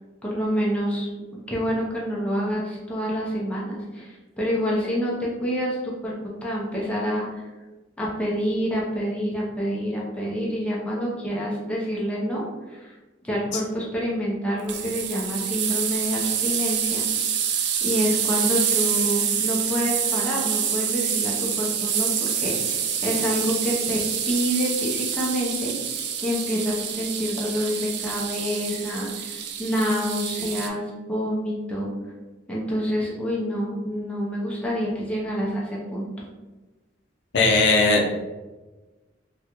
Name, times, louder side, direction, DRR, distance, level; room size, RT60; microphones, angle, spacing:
voice 1, 0.2-6.1 6.4-7.4 8.0-12.4 12.7-12.9 13.2-17.0 17.8-24.0 24.3-25.7 26.2-31.9 32.5-36.1, equal, 5° left, -5 dB, 0.6 m, -27 dB
sound 1, 14.7-30.7, right 8 dB, 65° right, 0.4 m, -27 dB
voice 2, 37.3-38.1, left 3 dB, 65° left, 0 dB, 0.5 m, -18 dB
3.4 x 2.3 x 2.9 m, 1.2 s
head